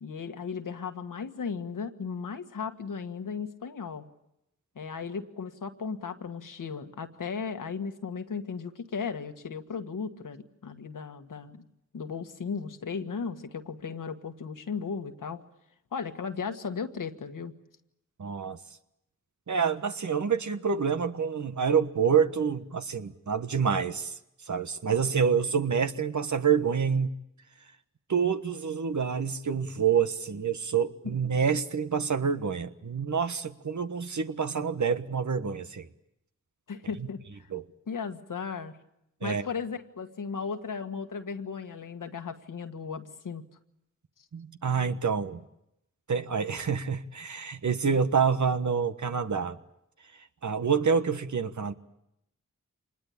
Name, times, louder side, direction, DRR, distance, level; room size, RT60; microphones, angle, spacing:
voice 1, 0.0-4.1 4.8-11.7 11.9-15.4 15.9-17.5 36.7-37.5 37.9-38.8 39.2-43.4, left 5 dB, 85° left, 1.7 m, -36 dB
voice 2, 18.2-18.6 19.5-24.2 24.5-27.1 28.1-35.9 37.5-37.6 39.2-39.4 44.3-45.4 46.1-49.6 50.4-51.7, right 6 dB, 65° right, 1.4 m, -27 dB
25.5 x 20.5 x 8.7 m
cardioid pair, 40°, 31 cm